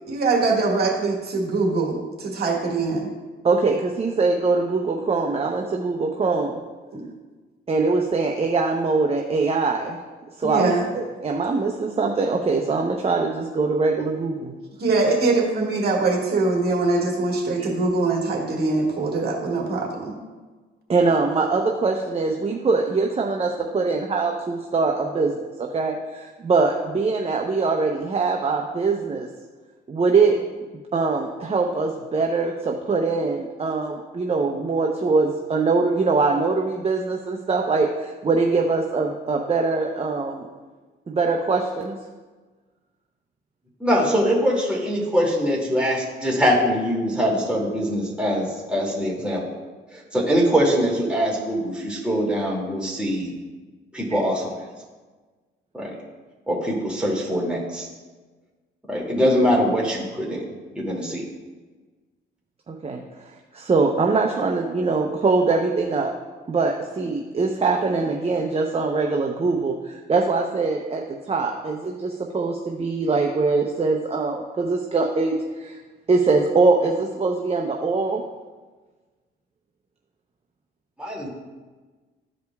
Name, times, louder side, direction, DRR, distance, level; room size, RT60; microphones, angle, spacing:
voice 1, 0.1-3.1 6.9-7.0 10.4-10.8 14.8-20.1, right 3 dB, 55° right, -2 dB, 1.8 m, -23 dB
voice 2, 3.4-6.6 7.7-10.0 10.4-14.6 20.9-29.3 29.9-30.4 30.9-40.5 41.1-42.0 62.7-63.0 63.5-66.1 66.5-75.8 76.1-78.2, right 4 dB, 30° right, 1 dB, 0.7 m, -22 dB
voice 3, 43.8-49.6 49.9-53.3 53.9-54.7 55.7-56.0 56.5-57.9 58.9-61.2 81.0-81.3, equal, 5° right, -4 dB, 2.4 m, -23 dB
13.5 x 5.0 x 2.3 m, 1.3 s
cardioid pair, 90°, 20 cm